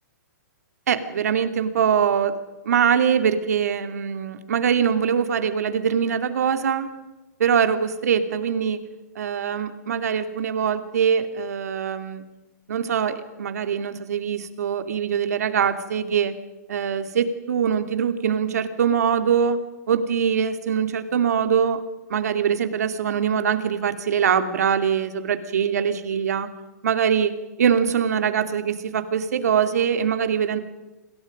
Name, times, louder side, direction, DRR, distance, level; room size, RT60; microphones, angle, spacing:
voice 1, 0.9-2.4 2.6-6.9 7.4-8.8 9.2-12.2 12.7-16.3 16.7-19.6 19.9-21.8 22.1-26.5 26.8-30.6, right 7 dB, 60° right, 9 dB, 2.7 m, -23 dB
30.0 x 26.5 x 5.3 m, 1.1 s
hypercardioid pair, 175°, 9 cm